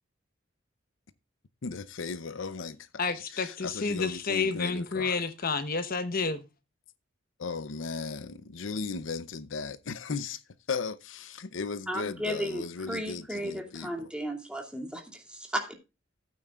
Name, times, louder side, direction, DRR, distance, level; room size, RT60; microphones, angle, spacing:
voice 1, 1.6-5.2 7.4-10.4 10.7-14.1, left 4 dB, 80° left, 0.7 m, -36 dB
voice 2, 3.0-6.4, left 4 dB, 50° left, 1.0 m, -30 dB
voice 3, 11.9-15.7, equal, 5° right, 2.5 m, -34 dB
16.0 x 8.9 x 2.4 m
head